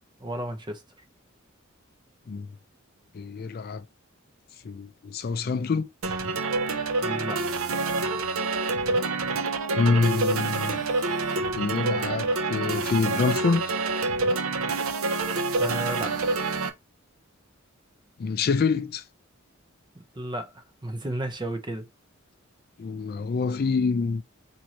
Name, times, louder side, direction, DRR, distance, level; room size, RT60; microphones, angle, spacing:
voice 1, 0.2-0.8 7.0-7.4 15.6-16.2 20.1-21.9, right 1 dB, 20° right, 0.7 m, -33 dB
voice 2, 3.1-3.8 4.6-5.9 9.7-10.8 11.6-13.8 18.2-19.1 22.8-24.2, left 4 dB, 50° left, 0.4 m, -26 dB
sound 1, 6.0-16.7, right 3 dB, 80° right, 0.6 m, -27 dB
4.6 x 2.6 x 2.8 m
head